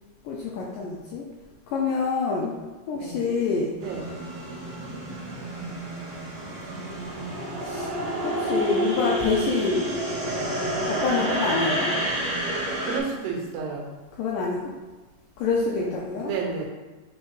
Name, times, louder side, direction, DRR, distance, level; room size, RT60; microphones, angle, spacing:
voice 1, 0.2-1.3 1.7-2.6 2.9-3.7 7.6-7.9 8.2-10.0 10.9-12.0 14.2-14.7 15.4-16.3, left 4 dB, 85° left, -3 dB, 2.0 m, -26 dB
voice 2, 2.9-3.2 3.8-4.1 12.8-13.9 15.8-15.9 16.2-16.7, right 5 dB, 90° right, -1 dB, 3.3 m, -31 dB
sound 1, 3.8-13.0, equal, 40° right, 2.1 m, -29 dB
8.5 x 3.7 x 3.2 m, 1.3 s
omnidirectional pair, 4.7 m